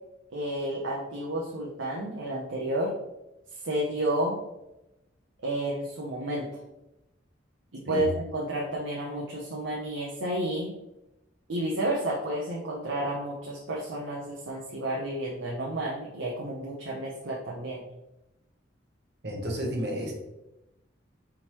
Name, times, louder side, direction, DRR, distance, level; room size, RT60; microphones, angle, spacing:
voice 1, 0.3-2.9 3.5-4.4 5.4-6.5 7.7-10.7 11.5-17.8, right 1 dB, 85° right, -2 dB, 0.7 m, -31 dB
voice 2, 19.2-20.1, equal, 60° right, 0 dB, 1.0 m, -31 dB
4.3 x 3.6 x 3.0 m, 0.92 s
head